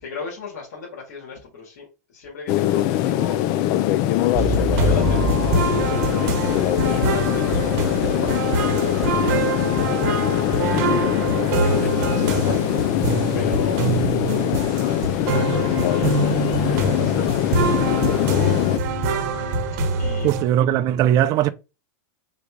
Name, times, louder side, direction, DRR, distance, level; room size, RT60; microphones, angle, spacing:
voice 1, 0.0-3.4 4.2-11.0 11.4-13.9 14.7-18.6 20.0-20.5, left 5 dB, 75° left, 1.9 m, -37 dB
sound 1, 2.5-18.8, left 13 dB, 50° left, 0.4 m, -22 dB
sound 2, 4.3-20.4, right 3 dB, 60° right, 0.9 m, -24 dB
voice 2, 20.2-21.5, right 11 dB, 40° right, 0.4 m, -19 dB
3.9 x 2.4 x 4.5 m
supercardioid pair, 130°, 9 cm